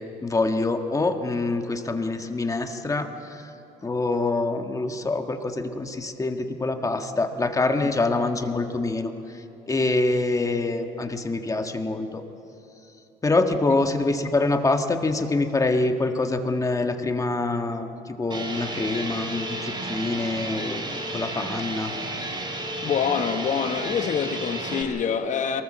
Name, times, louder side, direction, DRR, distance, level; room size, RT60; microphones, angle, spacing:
voice 1, 0.0-3.5 3.8-9.1 9.7-12.2 13.2-21.9, left 2 dB, 20° left, 6 dB, 1.6 m, -25 dB
sound 1, 18.3-24.8, right 2 dB, 25° right, 3.9 m, -32 dB
voice 2, 22.8-25.6, left 7 dB, 45° left, 7 dB, 1.3 m, -26 dB
23.5 x 19.0 x 7.5 m, 2.8 s
cardioid pair, 110°, 17 cm